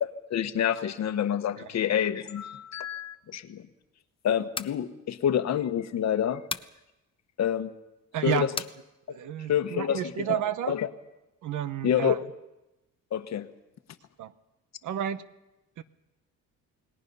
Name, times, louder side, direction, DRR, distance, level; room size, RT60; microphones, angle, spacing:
voice 1, 0.0-3.6 4.2-6.4 7.4-7.7 8.2-8.5 9.5-10.4 10.7-10.9 11.8-12.1 13.1-13.5, left 9 dB, 55° left, 1.3 m, -27 dB
sound 1, 4.3-4.8 6.5-6.8 8.6-8.8, left 4 dB, 15° left, 0.6 m, -34 dB
voice 2, 8.1-8.5 9.1-10.8 11.4-12.2 14.2-14.3 14.8-15.2 15.8-15.9, right 11 dB, 70° right, 1.1 m, -31 dB
29.0 x 19.5 x 5.5 m
cardioid pair, 130°, 32 cm